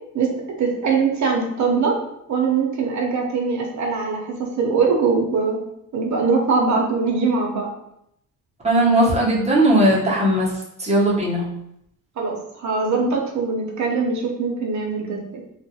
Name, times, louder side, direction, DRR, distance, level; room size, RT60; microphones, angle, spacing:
voice 1, 0.6-1.9 2.3-5.6 5.9-7.7 12.2-15.2, right 4 dB, 55° right, 0 dB, 0.8 m, -22 dB
voice 2, 8.6-10.5 10.8-11.4, right 1 dB, 20° right, -5 dB, 0.9 m, -18 dB
2.4 x 2.3 x 2.8 m, 0.76 s
cardioid pair, 85°, 35 cm